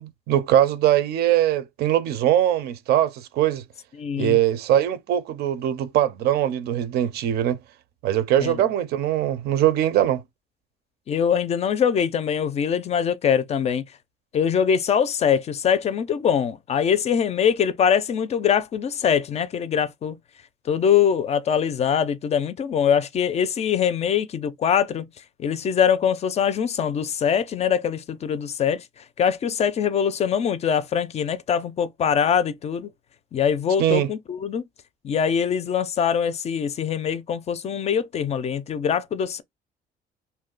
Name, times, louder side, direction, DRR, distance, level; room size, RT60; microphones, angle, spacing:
voice 1, 0.0-3.6 4.2-7.6 8.0-10.2 33.8-34.1, right 11 dB, 75° right, 0.5 m, -21 dB
voice 2, 4.0-4.4 8.4-8.6 11.1-13.8 14.3-20.2 20.7-25.1 25.4-32.9 33.3-34.7 35.0-39.4, left 8 dB, 40° left, 0.4 m, -23 dB
2.6 x 2.1 x 3.8 m
cardioid pair, 110°, 17 cm